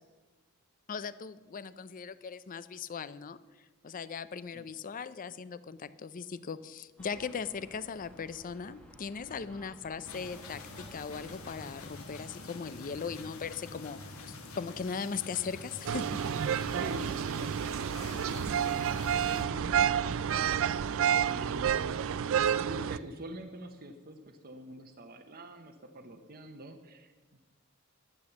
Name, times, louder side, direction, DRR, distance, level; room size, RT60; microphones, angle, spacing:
voice 1, 0.9-3.4 3.8-16.2, left 5 dB, 40° left, 16 dB, 0.5 m, -39 dB
sound 1, 7.0-11.9, equal, 5° left, 1.5 m, -55 dB
sound 2, 10.0-19.4, left 3 dB, 75° left, 1.4 m, -46 dB
sound 3, 15.9-23.0, right 8 dB, 65° right, 0.4 m, -29 dB
voice 2, 16.7-20.5 21.2-22.0 22.6-27.4, right 1 dB, 45° right, 4 dB, 0.8 m, -45 dB
11.5 x 8.4 x 7.2 m, 1.3 s
head